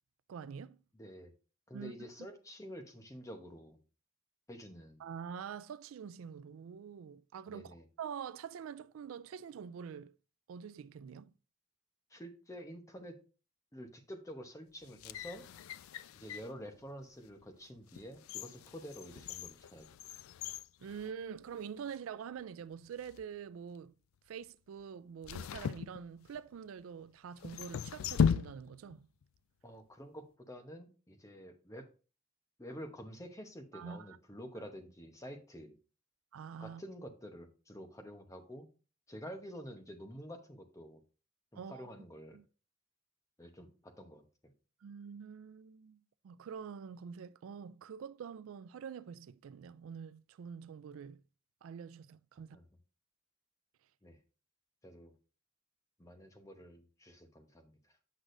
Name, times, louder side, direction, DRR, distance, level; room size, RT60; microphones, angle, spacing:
voice 1, 0.3-0.8 1.7-1.9 5.0-10.1 10.5-11.3 20.8-23.9 24.3-29.1 33.7-34.2 36.3-36.8 41.6-41.9 42.3-42.4 44.8-51.2 51.6-52.6, right 7 dB, 85° right, 0.3 m, -46 dB
voice 2, 0.9-1.3 1.7-3.8 4.5-5.0 7.5-7.8 12.1-13.2 13.7-15.4 16.1-19.9 29.6-31.9 32.6-35.7 36.6-38.7 39.1-41.0 41.5-42.4 43.4-44.5 52.5-52.7 54.0-54.2 54.8-55.1 56.0-57.7, equal, 15° left, 0.9 m, -49 dB
sound 1, 14.8-16.6 17.2-17.3 17.9-21.6 21.9-22.0 22.9-23.2 25.2-26.6 27.4-29.0 29.2-29.3, left 7 dB, 90° left, 0.3 m, -37 dB
8.2 x 6.1 x 2.6 m
head